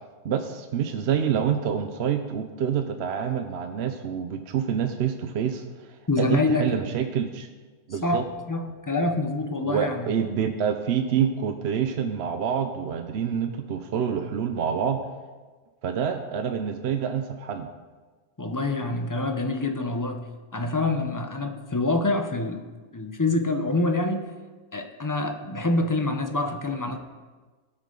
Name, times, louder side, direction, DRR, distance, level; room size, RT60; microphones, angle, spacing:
voice 1, 0.2-7.5 7.9-8.2 9.6-15.0 15.8-17.7, right 8 dB, 60° right, 6 dB, 0.8 m, -27 dB
voice 2, 6.1-6.8 8.0-8.2 8.5-10.1 18.4-24.3 24.7-27.0, left 2 dB, 20° left, 6 dB, 0.5 m, -26 dB
17.5 x 6.4 x 3.8 m, 1.4 s
omnidirectional pair, 1.4 m